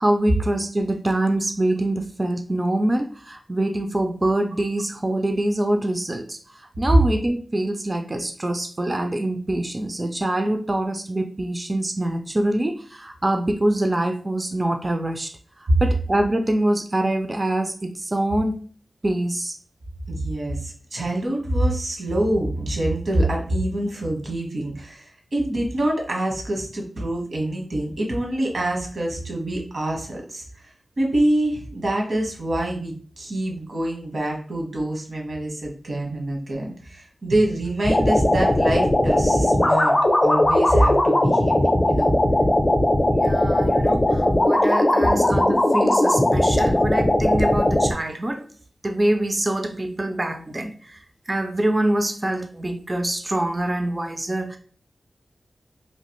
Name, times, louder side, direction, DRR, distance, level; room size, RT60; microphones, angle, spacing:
voice 1, 0.0-15.3 15.8-18.6 19.0-19.5 43.2-48.4 48.8-54.6, right 1 dB, 30° right, 5 dB, 0.4 m, -25 dB
voice 2, 20.1-30.4 31.0-39.9 40.2-42.2 43.6-43.7, right 1 dB, 70° right, -1 dB, 1.1 m, -25 dB
sound 1, 37.8-47.9, left 1 dB, 30° left, 0.5 m, -19 dB
3.1 x 2.4 x 3.0 m, 0.42 s
wide cardioid pair, 80°, 0 cm